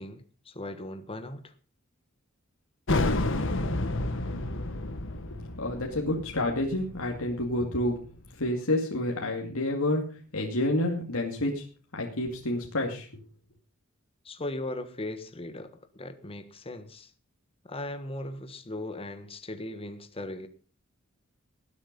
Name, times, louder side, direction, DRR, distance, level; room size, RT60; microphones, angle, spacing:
voice 1, 0.0-1.5 14.2-17.1 17.7-20.5, left 1 dB, 25° left, 1.4 m, -38 dB
sound 1, 2.9-8.2, left 2 dB, 65° left, 1.6 m, -30 dB
voice 2, 5.3-8.0 8.4-11.7 11.9-13.1, left 1 dB, 85° left, 2.4 m, -29 dB
19.0 x 8.3 x 5.3 m
head